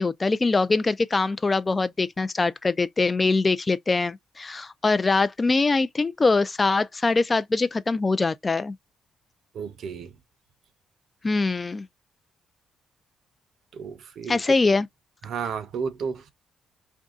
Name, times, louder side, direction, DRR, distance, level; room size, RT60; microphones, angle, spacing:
voice 1, 0.0-8.8 11.2-11.9 14.3-14.9, left 3 dB, 25° left, 0.3 m, -23 dB
voice 2, 9.5-10.1 13.7-14.4 15.2-16.3, right 6 dB, 65° right, 0.7 m, -32 dB
2.6 x 2.3 x 3.6 m
cardioid pair, 90°, 0 cm